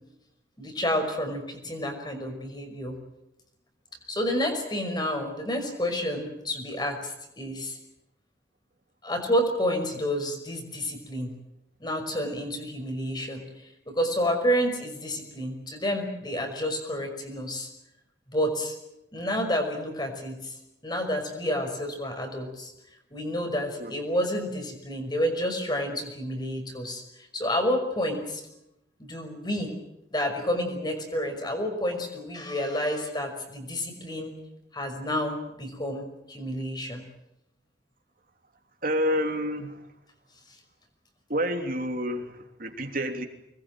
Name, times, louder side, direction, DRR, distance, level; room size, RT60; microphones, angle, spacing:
voice 1, 0.6-3.0 4.1-7.8 9.0-11.3 11.8-17.7 18.3-18.8 19.1-20.5 20.8-22.7 23.1-27.0 27.3-28.4 29.0-29.7 30.1-34.3 34.7-37.0, equal, 25° left, 5 dB, 5.6 m, -29 dB
voice 2, 38.8-39.8 41.3-43.2, equal, 50° right, 4 dB, 3.2 m, -29 dB
25.0 x 21.0 x 9.2 m, 0.86 s
head